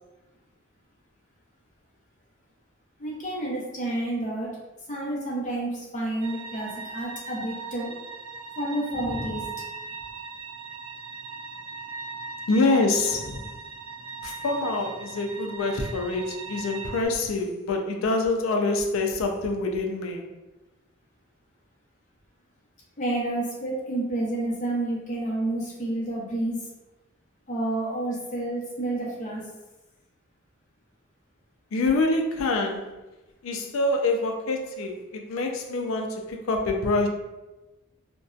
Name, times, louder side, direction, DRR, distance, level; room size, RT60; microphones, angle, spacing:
voice 1, 3.0-4.5 4.9-7.9 8.6-9.4 23.0-26.6 27.5-29.4, right 1 dB, 35° left, -4 dB, 0.7 m, -29 dB
sound 1, 6.2-17.1, right 5 dB, 85° right, 0.4 m, -39 dB
voice 2, 12.5-13.5 14.2-20.3 31.7-32.9 33.4-37.1, left 2 dB, 75° left, 3 dB, 0.4 m, -26 dB
2.6 x 2.1 x 2.3 m, 1.1 s
head